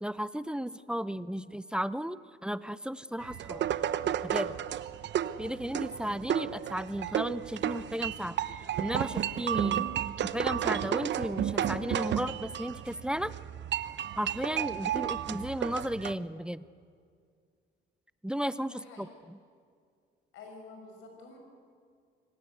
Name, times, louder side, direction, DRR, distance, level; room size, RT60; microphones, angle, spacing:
voice 1, 0.0-2.2 2.4-3.6 4.2-4.6 5.4-8.4 8.8-9.8 10.2-13.3 14.2-16.6 18.2-19.4, equal, 5° right, 16 dB, 0.6 m, -34 dB
sound 1, 3.2-16.1, right 10 dB, 65° right, 0.9 m, -32 dB
voice 2, 18.6-19.1 20.3-21.4, left 3 dB, 90° left, 2 dB, 6.5 m, -49 dB
26.0 x 18.5 x 8.0 m, 2.2 s
cardioid pair, 90°, 20 cm